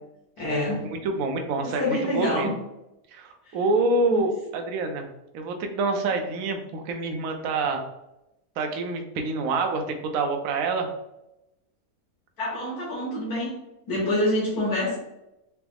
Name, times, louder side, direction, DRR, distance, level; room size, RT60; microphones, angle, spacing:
voice 1, 0.4-0.9 1.6-2.5 3.5-3.6 4.1-4.2 12.4-13.6 13.9-15.0, left 1 dB, 75° left, -6 dB, 1.6 m, -26 dB
voice 2, 0.9-2.5 3.1-5.1 5.3-7.8 8.6-10.9, right 3 dB, 70° right, 5 dB, 0.9 m, -26 dB
4.6 x 2.0 x 3.3 m, 0.89 s
omnidirectional pair, 1.6 m